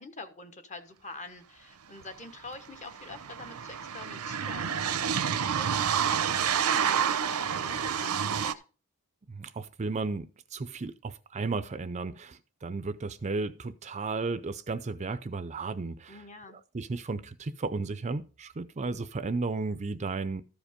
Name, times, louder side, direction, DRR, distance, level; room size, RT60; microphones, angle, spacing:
voice 1, 0.0-8.5 16.1-16.6, left 3 dB, 35° left, 1.2 m, -46 dB
sound 1, 2.0-2.1 2.3-8.5, right 8 dB, 85° right, 0.7 m, -29 dB
voice 2, 9.3-16.2 16.7-20.4, right 3 dB, 30° right, 0.5 m, -34 dB
13.5 x 5.1 x 5.1 m
head